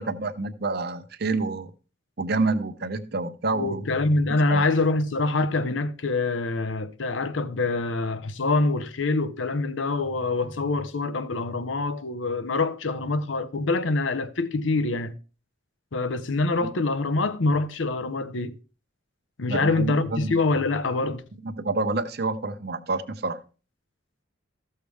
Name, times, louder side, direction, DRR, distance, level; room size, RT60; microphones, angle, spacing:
voice 1, 0.0-1.7 2.2-3.9 4.5-4.6 16.6-16.7 19.5-20.4 21.4-23.4, right 3 dB, 55° right, 0.9 m, -28 dB
voice 2, 3.5-15.1 15.9-18.6 19.4-21.2, left 3 dB, 75° left, 0.8 m, -25 dB
14.0 x 6.7 x 3.4 m
head